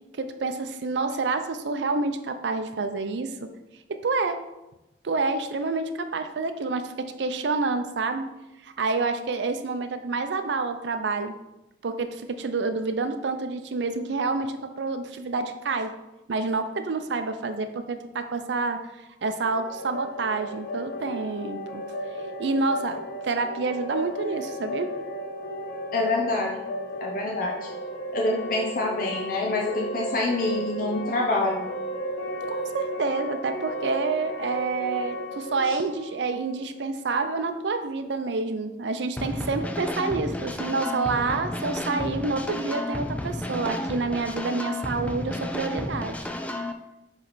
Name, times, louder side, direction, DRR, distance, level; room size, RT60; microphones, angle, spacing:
voice 1, 0.1-3.5 3.9-4.4 5.0-8.3 8.6-11.4 11.8-15.9 16.3-18.8 19.2-21.9 22.4-24.9 32.5-46.3, right 3 dB, 80° right, 8 dB, 0.5 m, -28 dB
sound 1, 19.4-37.2, equal, 85° left, 1.2 m, -34 dB
voice 2, 25.9-26.6 27.0-27.5 28.1-31.7, left 2 dB, 50° left, -1 dB, 0.6 m, -26 dB
sound 2, 39.2-46.7, left 1 dB, 10° left, 0.3 m, -32 dB
7.4 x 3.2 x 4.0 m, 0.94 s
head